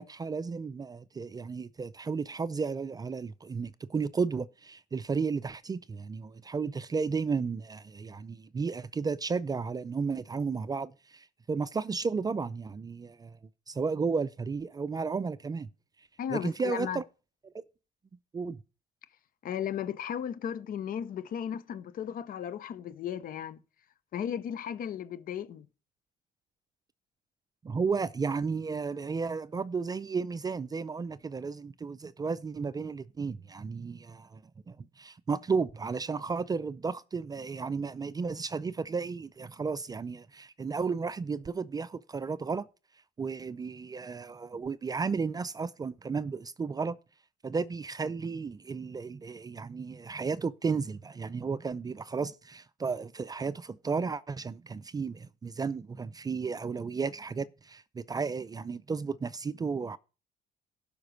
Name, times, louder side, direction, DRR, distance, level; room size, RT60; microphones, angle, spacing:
voice 1, 0.0-13.4 13.7-15.7 16.3-17.0 18.3-18.6 27.6-34.4 34.7-42.7 43.2-47.0 47.4-60.0, right 5 dB, 25° right, 0.4 m, -33 dB
voice 2, 16.2-17.0 19.4-23.6 24.1-25.7, left 9 dB, 55° left, 0.8 m, -35 dB
12.0 x 5.2 x 6.2 m
cardioid pair, 110°, 17 cm